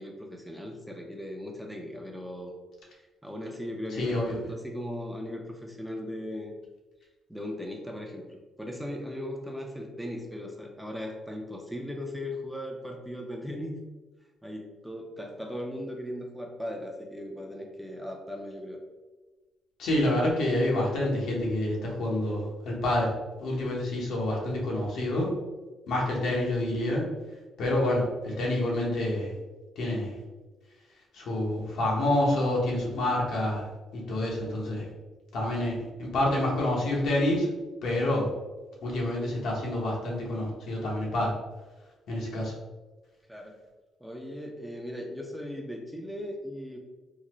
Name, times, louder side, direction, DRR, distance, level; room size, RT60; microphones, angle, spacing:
voice 1, 0.0-2.5 2.9-6.5 7.3-13.7 14.4-18.8 43.3-43.5 44.0-46.8, left 1 dB, 5° right, 1 dB, 0.5 m, -38 dB
voice 2, 4.0-4.4 19.8-23.1 23.4-25.3 25.9-27.0 27.6-29.3 29.8-30.1 31.1-33.6 33.9-34.8 35.3-37.5 37.8-38.3 38.8-41.3 42.1-42.5, left 1 dB, 75° left, -3 dB, 1.0 m, -27 dB
3.8 x 2.1 x 3.0 m, 1.2 s
cardioid pair, 90°, 0 cm